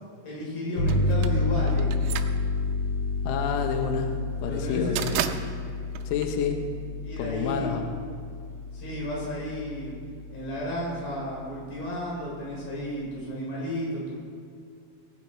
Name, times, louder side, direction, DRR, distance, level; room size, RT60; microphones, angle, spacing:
voice 1, 0.2-2.0 4.4-5.2 7.0-7.9 8.7-9.9 10.3-14.1, equal, 60° left, -4 dB, 5.4 m, -33 dB
sound 1, 0.8-10.1, left 2 dB, 40° left, 1.9 m, -29 dB
sound 2, 0.9-7.0, right 11 dB, 85° right, 2.8 m, -35 dB
voice 2, 3.2-4.2 4.4-5.2 6.1-6.6 7.2-7.8, left 6 dB, 75° left, 4 dB, 2.0 m, -28 dB
19.0 x 9.3 x 4.4 m, 2.3 s
omnidirectional pair, 4.9 m